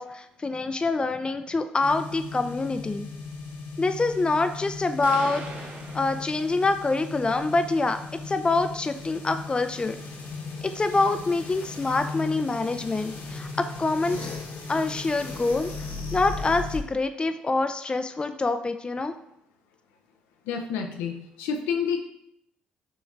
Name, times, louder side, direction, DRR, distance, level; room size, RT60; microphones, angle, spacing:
voice 1, 0.0-3.1 3.8-8.0 8.3-10.0 10.6-13.5 13.8-14.3 14.7-15.7 16.1-19.1, left 3 dB, 25° left, 8 dB, 0.4 m, -26 dB
sound 1, 1.8-16.8, left 4 dB, 60° left, 1.1 m, -37 dB
sound 2, 5.0-7.0, right 3 dB, 45° right, 0.8 m, -41 dB
voice 2, 20.5-22.0, left 6 dB, 80° left, 3 dB, 0.5 m, -29 dB
6.3 x 3.0 x 2.5 m, 0.75 s
hypercardioid pair, 50°, 4 cm